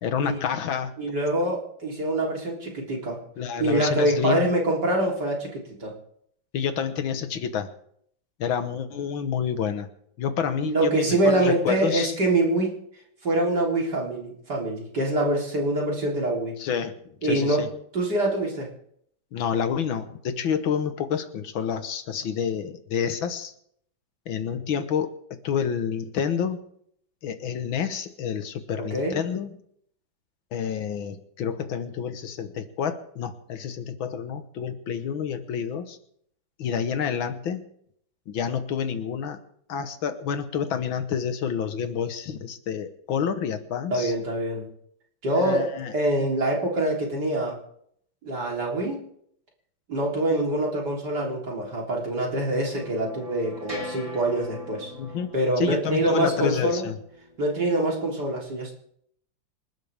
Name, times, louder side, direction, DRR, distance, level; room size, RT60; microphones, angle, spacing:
voice 1, 0.0-0.9 3.4-4.4 6.5-7.7 8.4-9.9 10.2-12.1 16.6-16.9 17.2-17.7 19.3-23.5 24.3-26.6 27.2-29.5 30.5-36.0 36.6-37.6 38.3-39.4 39.7-44.1 45.3-45.9 54.9-57.0, left 7 dB, 90° left, 9 dB, 2.0 m, -28 dB
voice 2, 1.0-3.2 3.6-5.9 10.6-12.8 13.2-16.6 17.2-17.7 17.9-18.7 28.9-29.2 43.9-44.7 45.2-47.6 48.2-49.0 49.9-54.9 55.3-56.8 57.4-58.7, right 1 dB, 55° right, -2 dB, 4.2 m, -25 dB
sound 1, 52.3-57.4, left 1 dB, 15° right, 4.1 m, -41 dB
28.0 x 12.5 x 3.6 m, 0.68 s
omnidirectional pair, 2.1 m